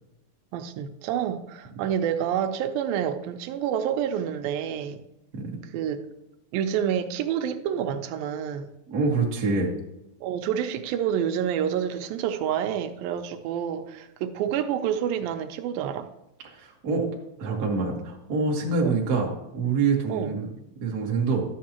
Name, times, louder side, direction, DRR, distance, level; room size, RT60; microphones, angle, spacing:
voice 1, 0.5-5.0 5.7-6.1 6.5-8.7 10.2-16.1 18.8-19.0 20.1-20.4, right 9 dB, 80° right, 2.3 m, -28 dB
voice 2, 8.9-9.7 16.5-17.1 17.4-20.5 20.8-21.4, right 4 dB, 60° right, 1.0 m, -25 dB
12.0 x 7.3 x 2.9 m
omnidirectional pair, 4.2 m